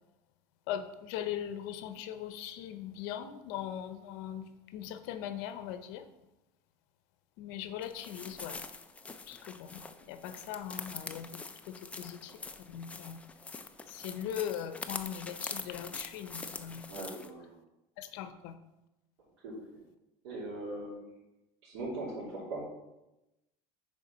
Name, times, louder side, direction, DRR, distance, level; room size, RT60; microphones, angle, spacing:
voice 1, 0.7-4.5 4.7-6.0 7.4-8.6 9.3-9.8 10.1-11.3 11.7-12.3 12.7-13.2 13.9-16.8 18.0-18.5, left 10 dB, 70° left, 10 dB, 0.8 m, -40 dB
sound 1, 7.8-17.3, left 4 dB, 10° left, 0.4 m, -44 dB
voice 2, 16.9-17.6 19.4-19.5 20.2-20.9 21.6-22.6, right 2 dB, 85° right, -9 dB, 2.9 m, -40 dB
6.8 x 4.8 x 5.4 m, 0.95 s
cardioid pair, 150°, 13 cm